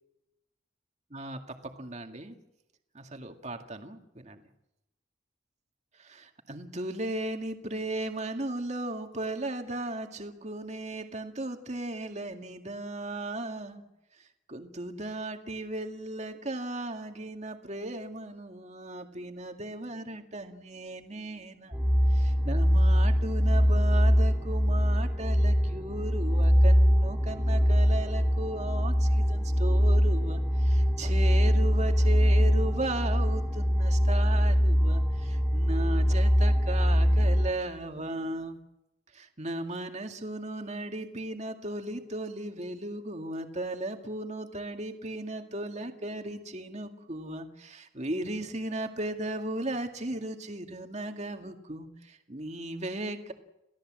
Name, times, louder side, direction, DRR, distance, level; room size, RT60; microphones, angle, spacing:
voice 1, 1.1-2.4 2.9-4.4 6.0-13.8 14.2-38.6 39.1-53.3, right 1 dB, 40° right, 5 dB, 2.1 m, -36 dB
sound 1, 21.7-37.5, equal, 5° right, 1.8 m, -23 dB
28.0 x 16.5 x 7.6 m, 0.91 s
head